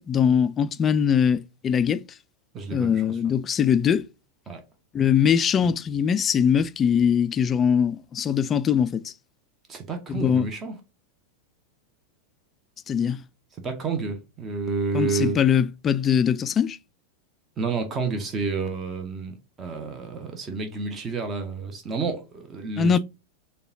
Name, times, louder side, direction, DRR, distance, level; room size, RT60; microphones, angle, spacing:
voice 1, 0.0-2.0 2.7-4.1 4.9-9.1 10.1-10.5 12.9-13.2 14.9-16.8 22.8-23.0, left 7 dB, 25° left, 0.3 m, -22 dB
voice 2, 2.5-3.2 4.5-4.6 9.7-10.7 13.6-15.4 17.6-23.0, right 4 dB, 25° right, 0.8 m, -30 dB
6.7 x 2.3 x 2.7 m
figure-of-eight pair, 90°, 0 cm